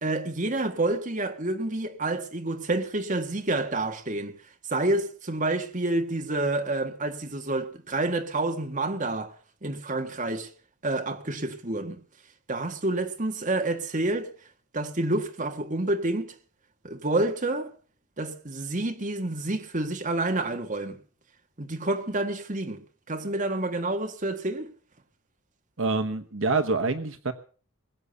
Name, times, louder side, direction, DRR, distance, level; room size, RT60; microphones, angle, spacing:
voice 1, 0.0-4.4 4.7-9.3 9.6-10.5 10.8-12.0 12.5-14.3 14.7-16.3 16.8-17.7 18.2-21.0 21.6-24.7, right 2 dB, 35° right, 1.6 m, -28 dB
voice 2, 25.8-27.3, right 3 dB, 65° right, 1.1 m, -26 dB
21.5 x 8.4 x 6.9 m
head